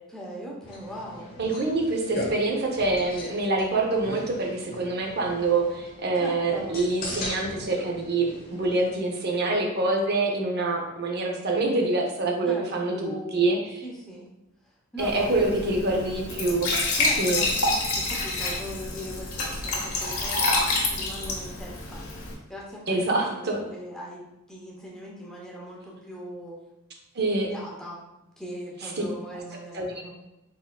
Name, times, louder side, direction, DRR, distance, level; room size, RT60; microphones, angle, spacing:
voice 1, 0.1-1.3 6.2-6.8 12.5-14.3 14.9-16.1 16.9-22.1 22.5-26.6 27.2-28.0 28.4-30.1, equal, 5° left, -4 dB, 0.7 m, -39 dB
sound 1, 0.6-9.0, left 1 dB, 45° left, 0.9 m, -39 dB
voice 2, 1.4-13.6 15.0-16.7 17.2-17.4 22.9-23.6 27.1-27.5 29.7-29.9, right 2 dB, 50° right, 2 dB, 0.6 m, -26 dB
Glass / Trickle dribble / Fill (with liquid), 15.0-22.3, left 2 dB, 85° left, 0.9 m, -28 dB
4.5 x 3.6 x 2.2 m, 0.91 s
head